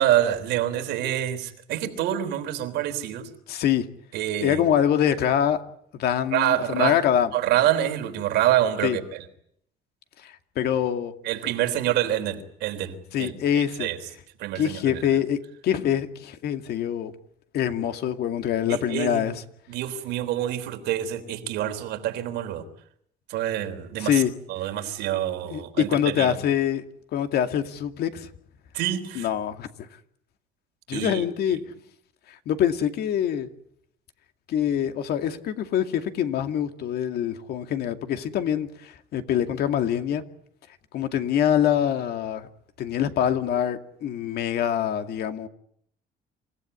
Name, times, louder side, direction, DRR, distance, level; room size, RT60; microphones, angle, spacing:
voice 1, 0.0-3.3 4.1-4.6 6.3-7.0 7.3-9.2 11.2-14.0 14.4-15.0 18.7-19.3 19.7-22.6 23.3-24.2 24.5-26.4 28.7-29.3 30.9-31.2 31.5-31.6, right 12 dB, 85° right, 7 dB, 3.6 m, -26 dB
voice 2, 3.5-3.9 4.4-5.6 5.9-7.3 8.8-9.0 10.2-11.1 13.1-13.9 14.6-15.4 15.6-17.1 17.5-19.3 24.0-24.3 25.4-26.8 27.1-28.3 29.1-29.7 30.9-31.6 32.3-33.5 34.5-40.2 40.9-42.5 42.8-45.5, left 9 dB, 70° left, 7 dB, 2.3 m, -25 dB
27.5 x 16.5 x 9.8 m, 0.71 s
cardioid pair, 110°, 17 cm